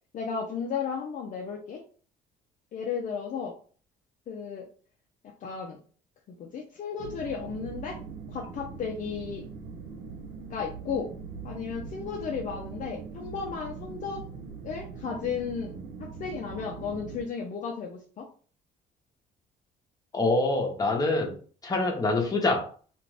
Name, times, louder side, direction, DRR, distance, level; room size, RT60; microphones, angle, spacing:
voice 1, 0.1-1.8 2.7-3.6 4.3-4.7 5.2-5.8 6.4-8.0 8.3-9.5 10.5-11.1 11.4-14.2 14.6-15.7 16.0-18.3, left 6 dB, 50° left, 0 dB, 0.6 m, -34 dB
sound 1, 7.0-17.2, right 5 dB, 75° right, 0.8 m, -41 dB
voice 2, 20.1-21.3 21.6-22.7, left 2 dB, 20° left, 1 dB, 1.0 m, -25 dB
2.5 x 2.5 x 3.2 m, 0.41 s
cardioid pair, 110°, 17 cm